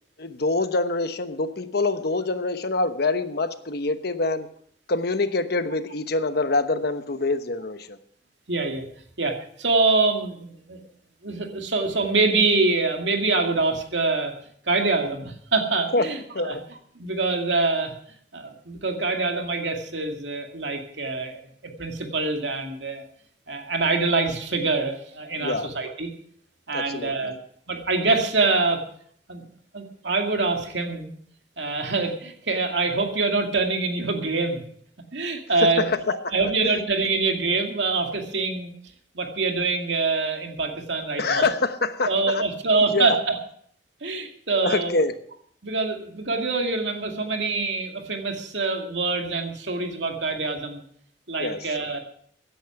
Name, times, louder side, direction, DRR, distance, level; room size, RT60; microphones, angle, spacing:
voice 1, 0.2-4.5 4.9-8.0 15.9-16.1 16.3-16.6 25.4-25.7 26.7-27.3 35.9-36.1 36.6-36.8 41.2-42.4 42.9-43.2 44.6-45.1 51.4-51.6, left 3 dB, 60° left, 10 dB, 1.1 m, -25 dB
voice 2, 8.5-8.9 9.2-10.8 11.2-14.3 14.7-16.6 16.9-17.9 18.3-21.4 21.8-23.0 23.5-26.1 26.7-27.3 27.7-28.8 29.3-29.4 29.7-31.1 31.6-34.6 35.1-35.9 36.3-38.7 39.1-41.5 42.1-43.4 44.0-44.9 45.6-50.8 51.3-52.0, right 3 dB, 80° right, 3 dB, 2.3 m, -25 dB
15.5 x 10.0 x 5.9 m, 0.63 s
head